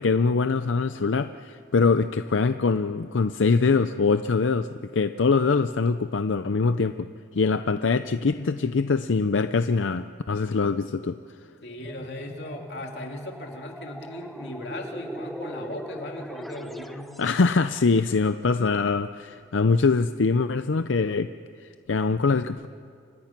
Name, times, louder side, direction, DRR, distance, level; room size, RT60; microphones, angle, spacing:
voice 1, 0.0-7.1 7.3-11.2 17.2-21.3 21.6-22.7, left 4 dB, 90° left, 10 dB, 0.6 m, -23 dB
voice 2, 11.6-17.2, left 1 dB, 65° left, 2 dB, 3.0 m, -37 dB
sound 1, 11.7-17.5, equal, ahead, 0.8 m, -40 dB
29.5 x 25.5 x 6.0 m, 2.3 s
head